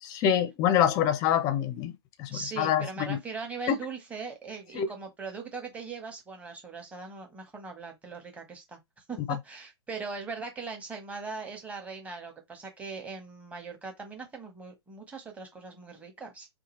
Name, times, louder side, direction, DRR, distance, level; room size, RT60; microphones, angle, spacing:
voice 1, 0.0-1.9 2.2-3.2 3.7-3.8 4.7-4.9 9.3-9.4, left 9 dB, 25° left, 0.5 m, -26 dB
voice 2, 2.3-8.8 9.1-16.5, right 4 dB, 10° right, 1.0 m, -40 dB
2.8 x 2.3 x 3.0 m
hypercardioid pair, 125°, 15 cm